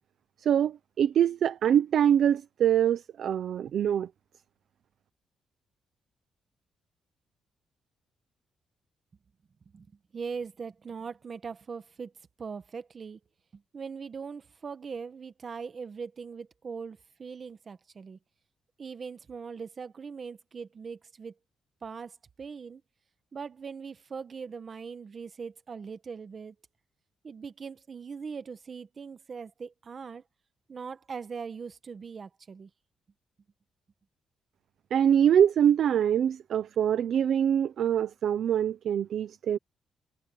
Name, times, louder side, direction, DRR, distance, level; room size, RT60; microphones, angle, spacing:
voice 1, 0.4-4.1 34.9-39.6, right 9 dB, 60° right, 0.8 m, -24 dB
voice 2, 10.1-12.1 12.4-13.2 13.5-18.2 18.8-21.3 21.8-22.8 23.3-26.5 27.2-30.2 30.7-32.7, right 5 dB, 35° right, 1.3 m, -40 dB
cardioid pair, 140°, 0 cm